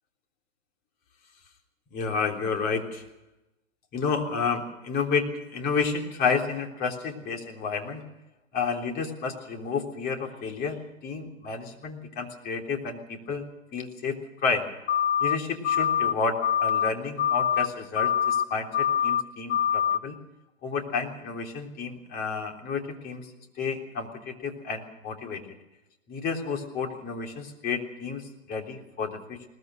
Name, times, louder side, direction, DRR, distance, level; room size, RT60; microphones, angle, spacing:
voice 1, 1.9-3.0 3.9-8.0 8.5-13.5 13.7-14.7 15.2-20.2 20.6-25.4 26.1-29.5, left 5 dB, 25° left, 2 dB, 3.5 m, -31 dB
sound 1, 14.9-15.4 15.6-16.1 16.4-16.9 17.2-17.7 18.0-18.4 18.7-19.2 19.5-20.0, left 9 dB, 55° left, 0.9 m, -24 dB
21.5 x 19.5 x 6.7 m, 0.95 s
hypercardioid pair, 130°, 40 cm